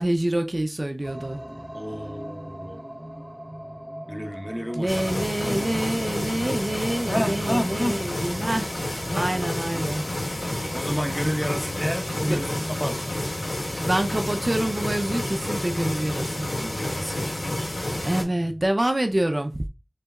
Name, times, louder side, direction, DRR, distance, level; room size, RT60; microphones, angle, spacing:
voice 1, 0.0-1.4 4.7-8.7 9.1-10.0 12.2-12.4 13.8-16.5 16.9-17.2 18.0-19.6, right 1 dB, 50° right, 0.6 m, -26 dB
sound 1, 1.0-18.7, equal, 30° right, 0.9 m, -40 dB
voice 2, 1.7-2.8 4.1-5.1 5.4-5.7 7.1-8.0 9.1-9.9 10.3-13.1 16.6-17.2, equal, 10° left, 1.1 m, -30 dB
sound 2, 4.9-18.2, left 1 dB, 85° left, 2.0 m, -30 dB
6.9 x 3.3 x 2.3 m
wide cardioid pair, 40°, 0 cm